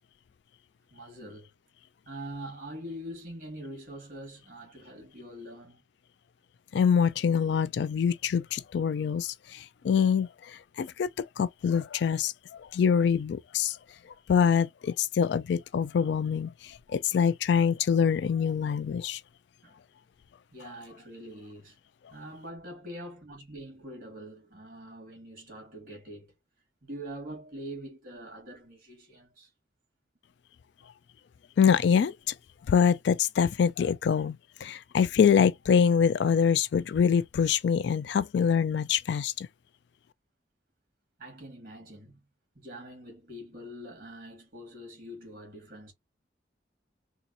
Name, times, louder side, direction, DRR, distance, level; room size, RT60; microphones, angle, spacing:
voice 1, 0.9-1.5 2.1-5.8 19.6-19.7 20.5-21.8 22.1-26.3 26.8-29.5 41.2-42.2 42.5-45.9, equal, 45° right, 2.0 m, -44 dB
voice 2, 6.7-13.8 14.3-19.2 31.6-32.1 32.7-39.5, left 7 dB, 65° left, 0.3 m, -25 dB
3.9 x 2.4 x 2.8 m
head